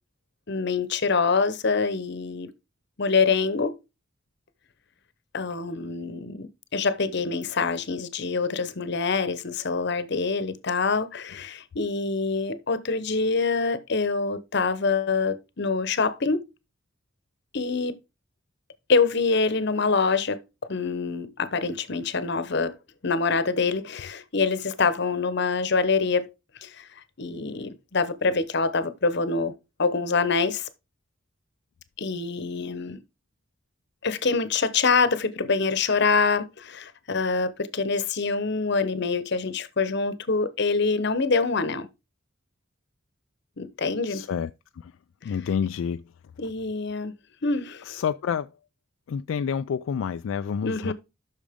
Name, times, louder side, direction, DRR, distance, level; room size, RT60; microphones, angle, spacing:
voice 1, 0.5-2.5 3.0-3.7 5.3-16.4 17.5-18.0 18.9-20.4 20.7-22.7 23.0-26.3 26.6-29.5 29.8-30.7 32.0-33.0 34.0-41.9 43.6-44.2 45.3-45.4 46.4-47.1 47.4-48.0 50.6-50.9, left 4 dB, 60° left, 0.9 m, -25 dB
voice 2, 44.1-44.5 44.8-44.9 45.2-46.0 47.9-48.5 49.1-50.9, left 7 dB, 80° left, 0.3 m, -28 dB
8.5 x 6.3 x 3.5 m
head